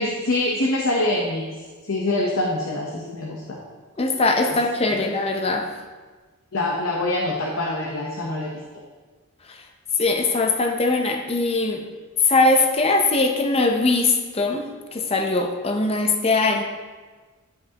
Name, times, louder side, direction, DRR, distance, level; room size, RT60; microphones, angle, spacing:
voice 1, 0.0-1.6 1.8-3.6 4.5-4.6 4.9-5.0 6.5-8.5, left 2 dB, 75° left, -2 dB, 0.9 m, -25 dB
voice 2, 4.0-5.7 10.0-11.8 12.2-16.6, left 3 dB, 30° left, 3 dB, 0.6 m, -21 dB
10.5 x 4.9 x 2.9 m, 1.4 s
head